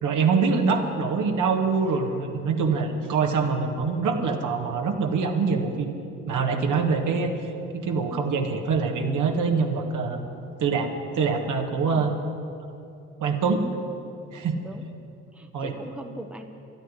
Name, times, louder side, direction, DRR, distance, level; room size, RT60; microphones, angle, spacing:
voice 1, 0.0-5.9 6.3-7.3 7.7-10.3 10.6-12.1 13.2-13.7 14.3-14.6 15.5-15.7, right 5 dB, 55° right, 3 dB, 1.7 m, -24 dB
voice 2, 15.3-16.4, right 1 dB, 5° right, 5 dB, 1.2 m, -40 dB
12.0 x 9.0 x 10.0 m, 2.6 s
hypercardioid pair, 55°, 37 cm